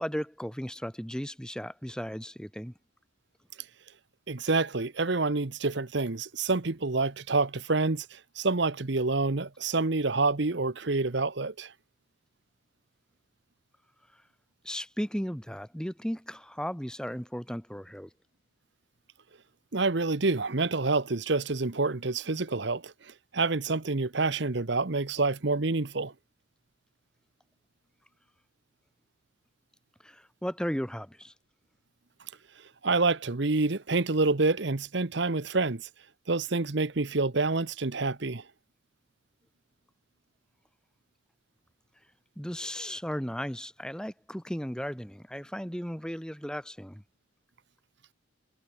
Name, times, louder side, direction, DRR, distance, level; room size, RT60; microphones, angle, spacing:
voice 1, 0.0-2.7 14.1-14.2 14.6-18.1 30.0-31.3 42.4-47.0, equal, 5° left, 1.7 m, -35 dB
voice 2, 4.3-11.7 19.7-26.1 32.8-35.9 36.3-38.4, right 3 dB, 60° right, 1.0 m, -27 dB
head